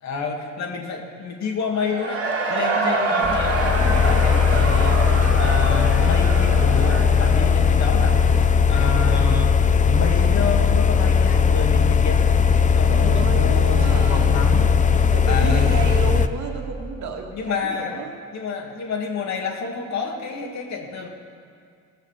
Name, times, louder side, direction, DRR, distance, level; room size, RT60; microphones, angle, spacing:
voice 1, 0.0-5.1 5.4-8.4 8.7-9.6 9.8-12.2 12.8-14.7 15.3-16.0 17.3-18.0 18.3-21.1, left 4 dB, 65° left, 2 dB, 2.1 m, -28 dB
Cheering / Crowd, 1.7-8.4, right 3 dB, 50° right, 2.2 m, -26 dB
voice 2, 2.7-3.3 12.9-14.6 15.1-18.1, right 5 dB, 70° right, 2 dB, 2.0 m, -32 dB
sound 1, 3.2-16.3, left 6 dB, 25° left, 0.6 m, -18 dB
19.0 x 6.6 x 7.3 m, 2.2 s
cardioid pair, 90°, 30 cm